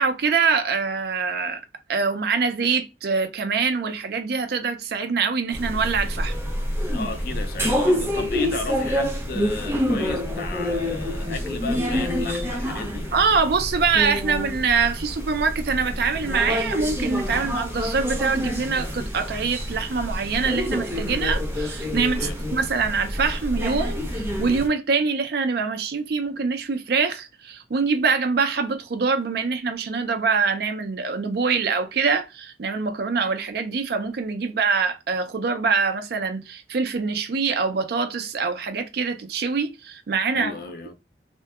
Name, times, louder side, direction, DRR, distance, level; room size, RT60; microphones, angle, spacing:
voice 1, 0.0-1.6 1.9-6.3 13.1-40.5, right 5 dB, 60° right, 0.4 m, -24 dB
Living Room Ambients With Voices, 5.5-24.7, equal, 15° right, 0.6 m, -27 dB
voice 2, 6.9-13.1 21.9-22.4 40.3-40.9, left 4 dB, 55° left, 0.4 m, -34 dB
2.7 x 2.1 x 2.3 m
head